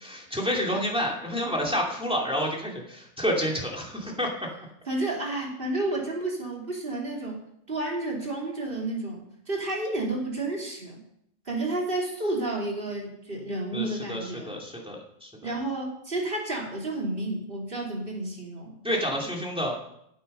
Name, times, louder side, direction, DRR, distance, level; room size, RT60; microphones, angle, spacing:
voice 1, 0.0-4.3 13.7-15.3 18.8-19.8, equal, 5° right, -2 dB, 2.6 m, -29 dB
voice 2, 4.9-7.4 7.7-11.0 11.5-14.6 15.4-18.8, right 2 dB, 50° right, -1 dB, 3.4 m, -31 dB
15.5 x 9.0 x 5.5 m, 0.76 s
omnidirectional pair, 1.2 m